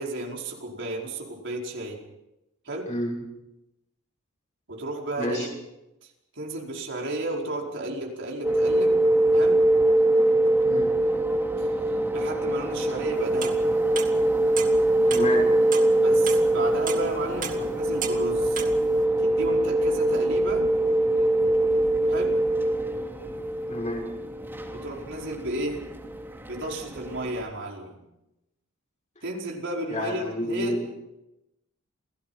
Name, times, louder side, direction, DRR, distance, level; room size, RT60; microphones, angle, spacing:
voice 1, 0.0-2.0 2.6-2.9 4.7-5.6 6.0-9.0 9.3-9.6 11.6-11.7 12.1-13.7 16.0-18.6 19.2-20.6 22.1-22.4 24.7-25.8 26.5-28.0 29.2-30.9, right 1 dB, 60° right, -1 dB, 5.0 m, -33 dB
voice 2, 5.2-5.5 10.6-10.9 15.1-15.5 23.7-24.1 29.9-30.8, left 1 dB, 35° left, -1 dB, 6.6 m, -29 dB
sound 1, 8.4-27.3, right 1 dB, 10° right, 3.1 m, -23 dB
sound 2, 13.2-14.1 14.6-14.9 15.1-15.9 16.3-16.6 16.9-17.7 18.0-18.8, right 7 dB, 40° right, 2.3 m, -34 dB
28.5 x 18.0 x 5.8 m, 0.90 s
head